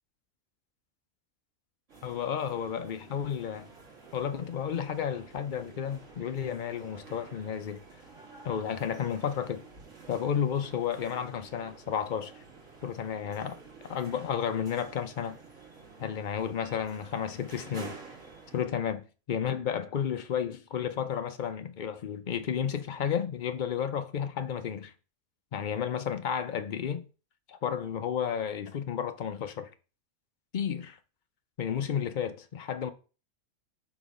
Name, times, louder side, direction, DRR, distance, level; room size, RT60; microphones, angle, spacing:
sound 1, 1.9-18.7, right 4 dB, 65° right, 2.3 m, -50 dB
voice 1, 2.0-3.7 4.1-7.8 8.4-9.6 10.1-12.4 12.8-15.4 16.0-18.0 18.5-24.9 25.5-27.0 27.5-29.7 30.5-31.0 31.6-32.9, left 8 dB, 50° left, 0.6 m, -32 dB
5.1 x 3.9 x 5.2 m
omnidirectional pair, 1.4 m